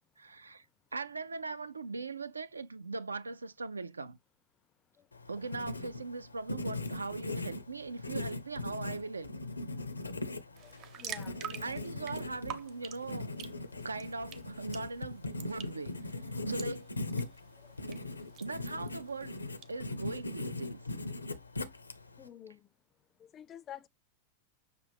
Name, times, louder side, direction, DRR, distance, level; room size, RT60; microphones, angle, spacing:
voice 1, 0.2-0.7 0.9-4.2 5.3-9.5 11.6-13.4 13.8-17.0 17.9-18.1 18.4-20.8, right 3 dB, 80° right, 0.4 m, -40 dB
Writing, 5.1-22.3, left 2 dB, 80° left, 0.5 m, -40 dB
sound 1, 10.6-19.7, right 9 dB, 40° right, 0.8 m, -48 dB
voice 2, 11.0-11.8 17.6-17.7 22.2-22.6 23.2-23.9, left 10 dB, 30° left, 0.3 m, -49 dB
6.6 x 2.4 x 3.3 m
figure-of-eight pair, 90°, 0 cm